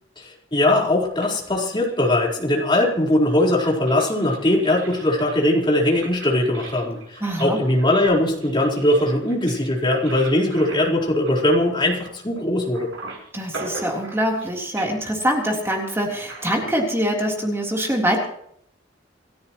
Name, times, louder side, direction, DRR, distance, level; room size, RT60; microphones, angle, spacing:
voice 1, 0.2-12.9, left 1 dB, 25° left, -2 dB, 4.3 m, -20 dB
sound 1, 1.2-2.5 3.1-12.4 12.7-14.5 14.8-15.2 16.2-16.8, right 3 dB, 90° right, 7.9 m, -40 dB
voice 2, 7.2-7.6 13.3-18.2, equal, 15° right, -1 dB, 3.5 m, -24 dB
28.5 x 13.5 x 3.1 m, 0.69 s
head